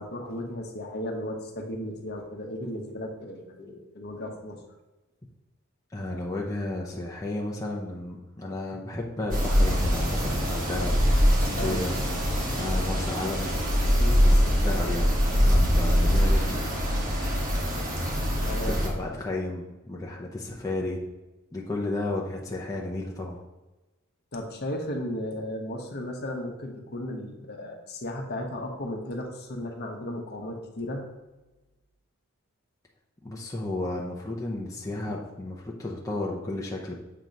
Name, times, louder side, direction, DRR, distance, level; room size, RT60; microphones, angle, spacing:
voice 1, 0.0-4.6 11.6-11.8 14.0-14.2 18.5-18.8 24.3-31.0, left 1 dB, 50° left, 2 dB, 1.0 m, -35 dB
voice 2, 5.9-12.0 12.5-13.6 14.2-15.1 15.4-16.6 18.8-21.0 21.5-23.4 33.2-37.0, left 2 dB, 15° left, -4 dB, 0.7 m, -33 dB
sound 1, 9.3-18.9, equal, 40° right, 1.3 m, -23 dB
7.6 x 3.0 x 5.2 m, 1.1 s
head